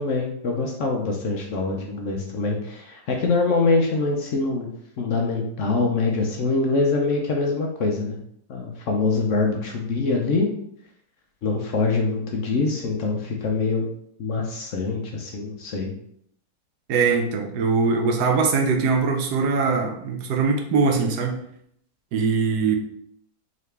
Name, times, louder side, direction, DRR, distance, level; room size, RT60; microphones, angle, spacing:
voice 1, 0.0-4.7 5.0-8.2 8.5-10.5 11.4-13.9 14.2-15.9, left 3 dB, 60° left, 1 dB, 0.8 m, -24 dB
voice 2, 16.9-21.4 22.1-22.7, right 4 dB, 80° right, 3 dB, 1.2 m, -22 dB
3.8 x 3.3 x 3.3 m, 0.69 s
omnidirectional pair, 1.7 m